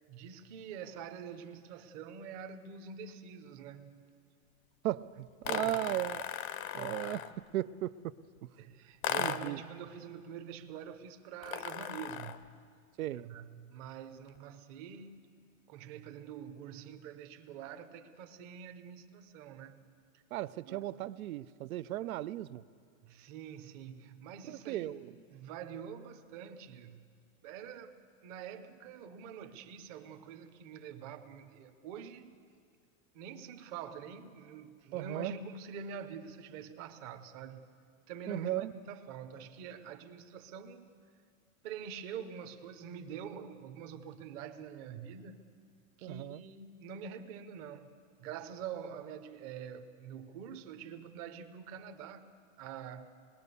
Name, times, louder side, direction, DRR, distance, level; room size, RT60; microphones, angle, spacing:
voice 1, 0.1-4.1 5.4-5.9 6.6-7.1 8.6-12.4 13.1-15.2 15.7-19.8 20.1-20.2 20.6-20.8 23.0-27.1 27.4-28.0 28.2-32.3 33.1-37.6 38.1-40.9 41.6-45.4 46.0-47.9 48.2-52.3 52.6-53.1, right 7 dB, 25° right, 8 dB, 0.8 m, -46 dB
voice 2, 4.8-6.2 6.7-7.9 9.2-9.6 13.0-13.3 20.3-22.6 24.5-25.1 34.9-35.3 38.3-38.7 46.0-46.4, right 14 dB, 80° right, 16 dB, 0.7 m, -36 dB
sound 1, 5.4-7.4 9.0-9.6 11.4-12.5, left 11 dB, 75° left, 0.9 m, -37 dB
26.0 x 21.0 x 6.9 m, 2.2 s
supercardioid pair, 175°, 41 cm